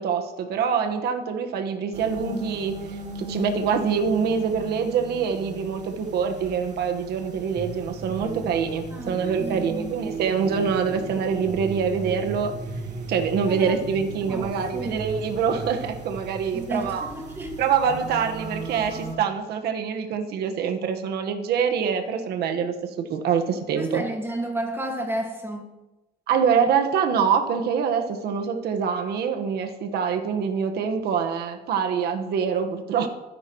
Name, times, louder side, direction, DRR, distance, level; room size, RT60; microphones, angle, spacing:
voice 1, 0.0-12.5 13.1-17.1 17.6-24.0 26.3-33.1, right 6 dB, 70° right, 1.5 m, -25 dB
sound 1, 1.9-19.1, right 3 dB, 45° right, 3.0 m, -36 dB
voice 2, 8.9-10.0 13.5-13.7 14.3-15.1 16.5-17.6 23.8-25.7, right 1 dB, 15° right, 2.0 m, -32 dB
24.5 x 11.0 x 3.2 m
cardioid pair, 110°, 17 cm